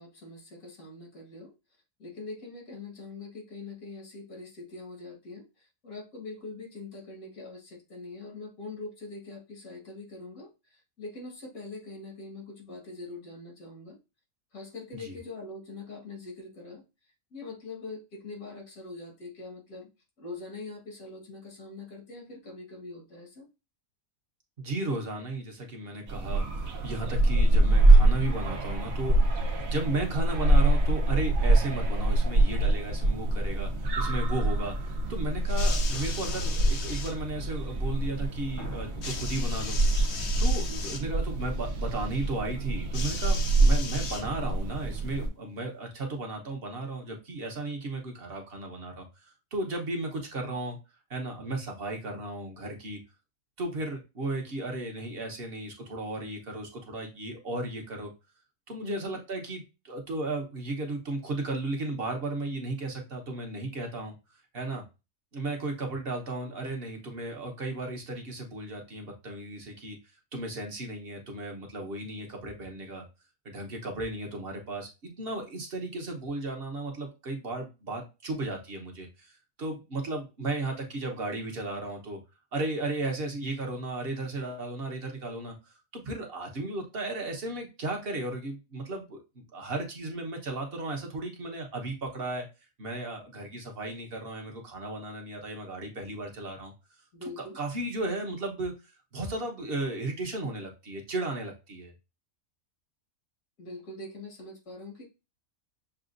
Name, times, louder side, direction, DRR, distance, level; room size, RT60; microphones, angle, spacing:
voice 1, 0.0-1.5 2.0-14.0 14.5-16.8 17.3-19.9 20.2-23.5 40.5-40.9 58.8-59.2 97.1-97.6 103.6-105.0, left 3 dB, 80° left, -1 dB, 2.0 m, -43 dB
voice 2, 24.6-29.2 29.6-39.8 40.4-50.8 51.1-53.0 53.6-58.1 58.7-64.1 64.5-64.8 65.3-70.0 70.3-73.0 73.4-79.3 79.6-82.2 82.5-85.6 85.9-92.5 92.8-96.7 97.4-98.7 99.1-101.9, right 2 dB, 50° right, 2 dB, 1.1 m, -35 dB
sound 1, 26.1-45.3, right 2 dB, 75° right, 1.2 m, -25 dB
sound 2, 35.5-37.1 39.0-41.1 42.9-44.6 45.6-45.7, left 5 dB, 60° left, 0.9 m, -38 dB
sound 3, 35.9-37.4 38.0-38.1 38.6-39.4, left 2 dB, 25° left, 0.4 m, -44 dB
6.7 x 2.3 x 2.5 m, 0.27 s
omnidirectional pair, 1.4 m